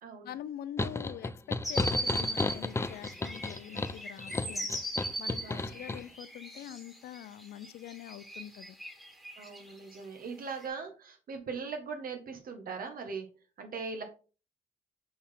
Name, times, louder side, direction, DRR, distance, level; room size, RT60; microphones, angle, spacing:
voice 1, 0.2-8.8, left 11 dB, 75° left, 0.5 m, -45 dB
sound 1, 0.8-6.0, left 2 dB, 15° left, 0.5 m, -33 dB
sound 2, 1.6-10.0 10.6-10.7, right 1 dB, ahead, 1.8 m, -39 dB
voice 2, 5.4-5.7 9.4-13.3 13.6-14.0, right 5 dB, 65° right, 1.6 m, -40 dB
6.0 x 4.1 x 3.8 m
supercardioid pair, 60°, 16 cm